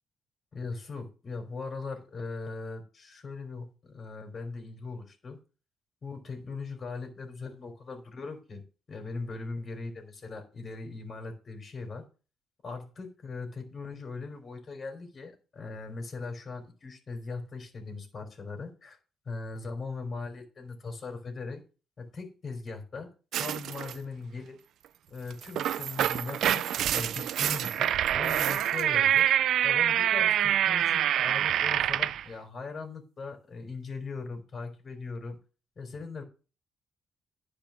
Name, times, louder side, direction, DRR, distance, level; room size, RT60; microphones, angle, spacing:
voice 1, 0.5-5.4 6.0-8.6 8.9-12.0 12.6-19.0 19.3-21.6 22.0-23.1 23.4-24.6 25.1-26.7 26.9-29.3 29.6-35.4 35.8-36.2, left 4 dB, 40° left, 2 dB, 3.4 m, -39 dB
sound 1, 23.3-24.0 25.3-32.2, right 11 dB, 75° right, 0.4 m, -26 dB
10.5 x 5.1 x 7.0 m, 0.35 s
cardioid pair, 90°, 0 cm